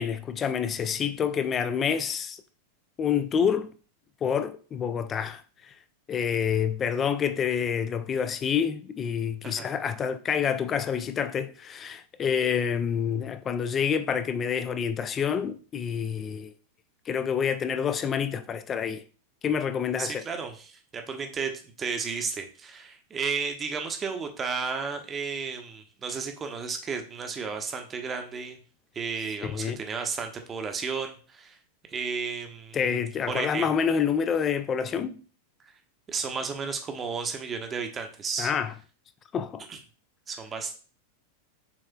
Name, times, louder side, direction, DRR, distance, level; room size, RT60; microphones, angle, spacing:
voice 1, 0.0-2.4 3.0-3.7 4.2-5.7 6.1-16.5 17.1-19.0 19.4-20.2 29.4-29.8 32.7-35.2 38.4-38.7 39.3-39.7, left 7 dB, 25° left, 0.4 m, -28 dB
voice 2, 9.4-9.7 20.0-21.5 21.8-28.6 28.9-31.6 31.9-33.0 33.3-33.7 36.1-38.5 39.7-39.8 40.3-40.7, right 5 dB, 20° right, 0.7 m, -33 dB
6.9 x 3.1 x 2.2 m
figure-of-eight pair, 90°, 0 cm